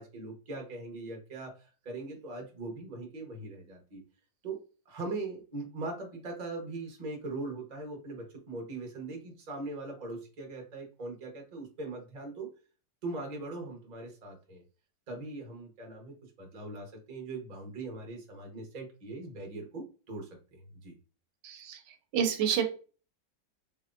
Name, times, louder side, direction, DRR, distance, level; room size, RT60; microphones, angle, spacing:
voice 1, 0.0-4.0 4.4-4.6 4.9-12.5 13.0-14.6 15.1-20.9, right 2 dB, 30° right, 2 dB, 0.8 m, -40 dB
voice 2, 21.4-21.8 22.1-22.7, right 8 dB, 80° right, 6 dB, 1.3 m, -28 dB
3.4 x 3.0 x 2.4 m, 0.36 s
omnidirectional pair, 1.9 m